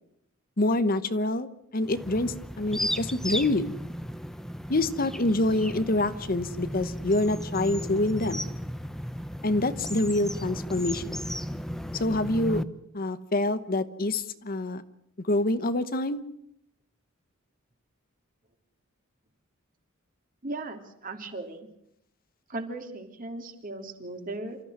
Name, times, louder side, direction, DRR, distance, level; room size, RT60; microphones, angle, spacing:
voice 1, 0.6-3.7 4.7-8.5 9.4-11.2 12.0-12.6 12.9-14.8 15.2-16.2, left 2 dB, 45° left, 12 dB, 1.1 m, -26 dB
sound 1, 1.8-12.6, equal, ahead, 0.8 m, -35 dB
voice 2, 20.4-21.7 22.5-24.6, right 2 dB, 40° right, 5 dB, 3.1 m, -37 dB
28.0 x 14.0 x 9.6 m, 0.76 s
head